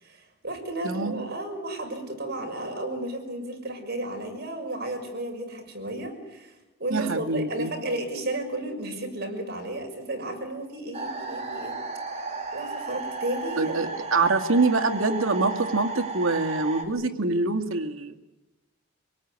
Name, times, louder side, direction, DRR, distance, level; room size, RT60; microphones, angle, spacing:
voice 1, 0.0-11.8 12.1-12.2 12.5-13.9, right 1 dB, 50° right, 4 dB, 6.2 m, -33 dB
voice 2, 0.8-1.2 6.9-7.7 13.6-18.2, right 3 dB, 85° right, 6 dB, 2.3 m, -25 dB
sound 1, 10.9-16.8, right 3 dB, 35° right, 3.4 m, -34 dB
26.5 x 18.5 x 9.7 m, 1.0 s
head